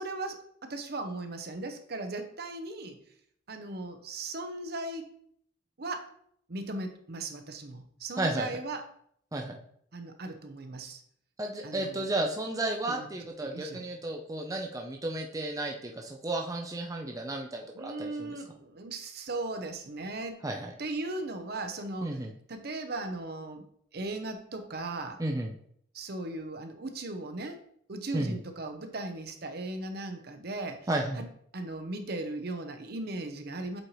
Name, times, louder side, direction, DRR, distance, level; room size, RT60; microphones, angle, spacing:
voice 1, 0.0-3.0 3.5-5.1 5.8-6.1 6.5-8.8 9.9-11.0 11.6-12.1 12.9-13.1 13.4-13.9 17.7-20.4 20.8-22.2 22.5-23.6 23.9-25.2 25.9-30.9 31.2-31.3 31.5-33.8, right 2 dB, 55° right, 6 dB, 0.7 m, -37 dB
voice 2, 8.2-8.5 9.3-9.6 11.4-18.4 20.4-20.7 22.0-22.3 25.2-25.5 28.1-28.4 30.9-31.2, right 1 dB, 20° right, 1 dB, 0.5 m, -33 dB
7.8 x 4.3 x 3.1 m, 0.66 s
head